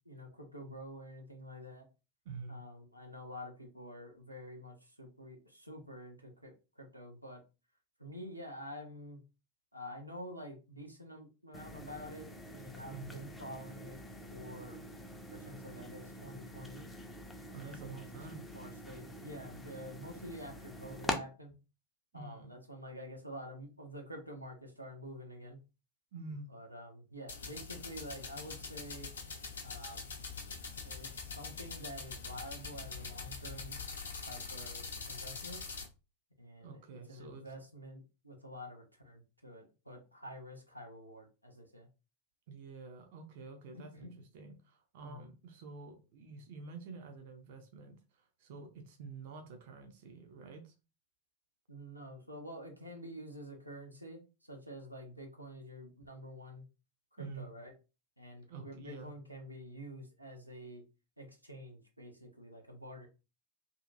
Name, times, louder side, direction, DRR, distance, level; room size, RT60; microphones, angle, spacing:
voice 1, 0.0-1.8 2.5-7.4 8.0-9.2 9.7-14.0 14.3-14.8 15.3-16.9 17.6-17.9 18.5-21.5 22.1-25.6 26.5-29.1 29.6-30.1 30.8-33.8 34.2-35.6 36.4-36.8 37.1-41.9 43.7-44.1 45.0-45.3 51.7-56.6 57.2-57.7 58.2-60.8 61.2-63.1, equal, 90° right, 2 dB, 0.7 m, -48 dB
voice 2, 2.2-2.6 12.9-13.3 17.5-18.4 22.1-22.5 26.1-26.5 36.6-37.6 42.5-50.7 57.2-57.5 58.5-59.1, right 4 dB, 50° right, 5 dB, 0.5 m, -48 dB
sound 1, 11.5-21.2, left 1 dB, 5° left, 0.5 m, -45 dB
sound 2, 27.3-35.9, left 5 dB, 70° left, 0.6 m, -44 dB
2.8 x 2.7 x 2.4 m, 0.30 s
figure-of-eight pair, 90°, 0 cm